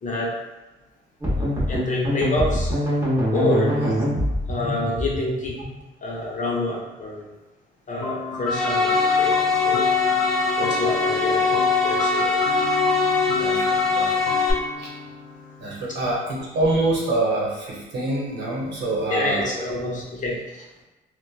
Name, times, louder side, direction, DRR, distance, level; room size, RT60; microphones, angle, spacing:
voice 1, 0.0-0.4 1.4-2.7 3.3-3.8 4.5-5.6 6.0-7.3 7.9-9.8 10.6-12.3 19.1-20.6, left 1 dB, 40° left, -3 dB, 0.7 m, -27 dB
sound 1, 1.2-5.8, left 1 dB, 15° right, 0.9 m, -24 dB
voice 2, 3.8-4.1 13.4-14.2 14.8-14.9 15.6-19.4, right 2 dB, 60° right, -4 dB, 0.9 m, -26 dB
sound 2, 8.0-15.9, left 3 dB, 85° left, 0.5 m, -32 dB
sound 3, 8.5-14.5, left 4 dB, 5° left, 0.5 m, -21 dB
2.9 x 2.1 x 2.3 m, 1.1 s
cardioid pair, 90°, 20 cm